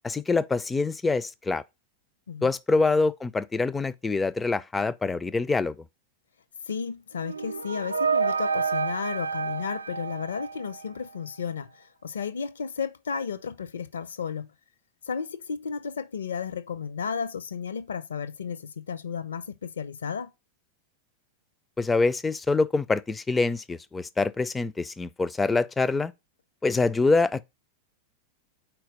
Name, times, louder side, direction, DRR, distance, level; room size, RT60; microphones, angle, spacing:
voice 1, 0.0-1.6 2.4-5.8 21.8-26.1 26.6-27.4, left 3 dB, 10° left, 0.4 m, -25 dB
voice 2, 6.7-14.5 15.0-20.3, left 6 dB, 65° left, 0.5 m, -33 dB
sound 1, 7.2-11.1, right 5 dB, 80° right, 0.3 m, -29 dB
4.5 x 4.4 x 5.2 m
figure-of-eight pair, 90°, 0 cm